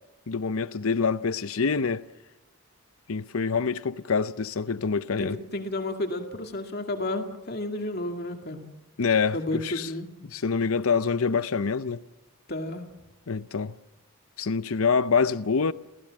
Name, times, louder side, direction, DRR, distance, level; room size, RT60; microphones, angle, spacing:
voice 1, 0.3-2.0 3.1-5.4 9.0-9.4 9.6-9.9 10.3-12.0 13.3-13.7 14.4-15.7, left 5 dB, 85° left, 0.7 m, -25 dB
voice 2, 5.2-8.6 9.3-10.1 12.5-12.9, left 1 dB, 50° left, 2.3 m, -32 dB
29.5 x 15.5 x 7.6 m
head